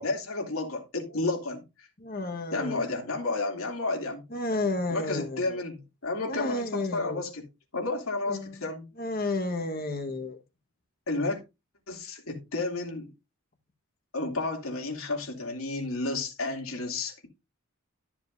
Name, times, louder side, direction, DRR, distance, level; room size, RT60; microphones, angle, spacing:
voice 1, 0.0-1.9 2.5-4.2 4.9-7.4 7.7-8.9 11.1-11.4 11.9-13.1 14.1-17.3, left 3 dB, 90° left, 3.0 m, -31 dB
voice 2, 2.0-2.8 4.3-5.6 6.3-7.2 8.3-8.6 9.0-10.4, left 2 dB, 45° left, 1.6 m, -31 dB
13.0 x 7.4 x 2.7 m
head